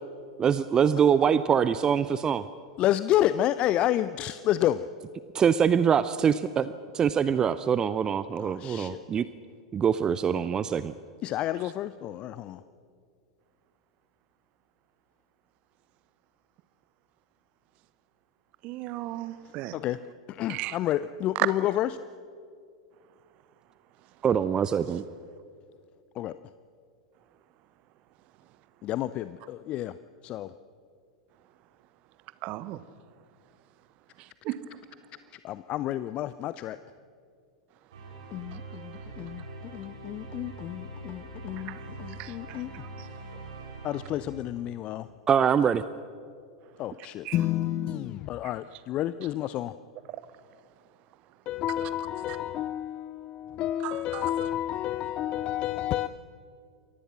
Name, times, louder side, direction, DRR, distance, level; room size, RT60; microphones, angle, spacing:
voice 1, 0.4-2.4 5.3-9.2 9.7-10.9 24.2-25.0 45.3-45.8, right 7 dB, 20° right, 0.6 m, -24 dB
voice 2, 2.8-4.9 8.4-9.0 11.2-12.6 19.7-20.0 20.3-22.0 26.2-26.4 28.8-30.0 30.2-30.5 35.3-36.8 38.3-42.7 43.8-45.1 46.8-49.7 51.5-56.1, left 13 dB, 35° left, 0.6 m, -30 dB
voice 3, 18.6-19.8 20.5-20.8 21.3-21.5 32.4-32.8 34.4-34.6 41.7-41.8 42.2-42.8 47.2-47.4 53.8-54.3, right 18 dB, 40° right, 1.1 m, -34 dB
sound 1, 37.9-45.0, right 2 dB, 65° right, 5.6 m, -43 dB
28.5 x 23.0 x 6.1 m
figure-of-eight pair, 90°, 3 cm